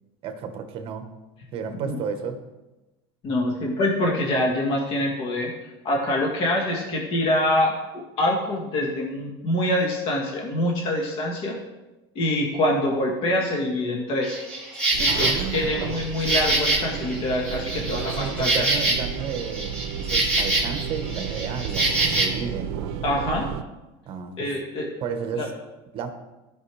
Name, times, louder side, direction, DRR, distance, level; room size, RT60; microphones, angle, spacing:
voice 1, 0.2-1.1 1.5-2.4 15.0-15.9 17.7-22.8 24.1-24.5 25.0-25.5 25.9-26.1, right 6 dB, 45° right, 7 dB, 1.2 m, -32 dB
voice 2, 3.2-5.5 5.8-11.6 12.1-14.4 15.0-18.6 23.0-23.5 24.4-24.9 25.3-25.5, left 1 dB, 40° left, 0 dB, 1.6 m, -25 dB
Insect, 14.2-22.3, right 2 dB, 10° left, 3.0 m, -25 dB
sound 1, 14.9-23.6, right 8 dB, 70° right, 0.6 m, -32 dB
14.5 x 5.3 x 3.3 m, 1.1 s
supercardioid pair, 130°, 13 cm